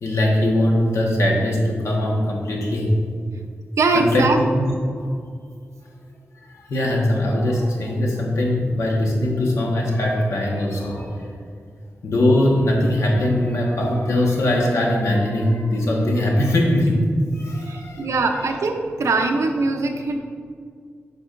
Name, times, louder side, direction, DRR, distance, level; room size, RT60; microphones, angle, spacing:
voice 1, 0.0-2.9 3.9-4.5 5.0-5.1 6.4-11.3 12.0-17.1 17.3-18.5, left 1 dB, 80° left, -1 dB, 1.3 m, -21 dB
voice 2, 3.8-4.4 17.7-20.2, right 3 dB, 80° right, 4 dB, 0.6 m, -21 dB
8.3 x 6.0 x 2.5 m, 2.1 s
wide cardioid pair, 150°, 5 cm